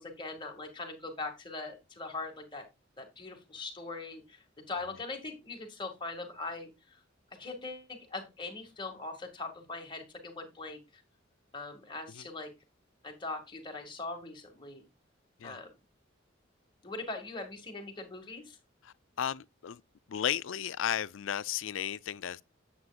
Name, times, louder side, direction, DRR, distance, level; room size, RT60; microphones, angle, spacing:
voice 1, 0.0-2.6 3.0-7.0 7.4-11.0 11.5-12.5 13.0-14.8 15.4-15.7 16.8-18.6, left 3 dB, 25° left, 2.2 m, -41 dB
voice 2, 18.8-19.8 20.1-22.5, left 9 dB, 70° left, 0.4 m, -34 dB
9.7 x 8.4 x 2.4 m
head